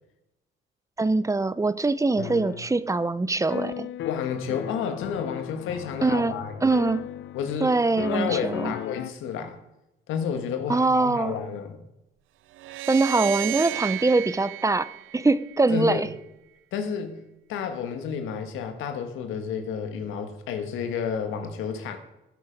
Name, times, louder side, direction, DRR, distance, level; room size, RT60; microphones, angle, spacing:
voice 1, 1.0-3.9 6.0-6.3 6.6-7.0 7.6-8.7 10.7-11.4 12.9-14.9 15.1-16.1, right 3 dB, 15° right, 16 dB, 0.6 m, -23 dB
sound 1, 2.2-2.7 3.5-7.7 8.0-9.1, left 12 dB, 70° left, 0.6 m, -36 dB
voice 2, 4.0-6.5 7.3-7.7 8.1-9.6 10.1-11.8 15.7-16.0 16.7-17.2 17.5-22.0, left 7 dB, 90° left, 7 dB, 1.5 m, -30 dB
sound 2, 12.6-15.9, right 16 dB, 80° right, 0.5 m, -33 dB
14.5 x 8.7 x 5.2 m, 0.91 s
cardioid pair, 90°, 20 cm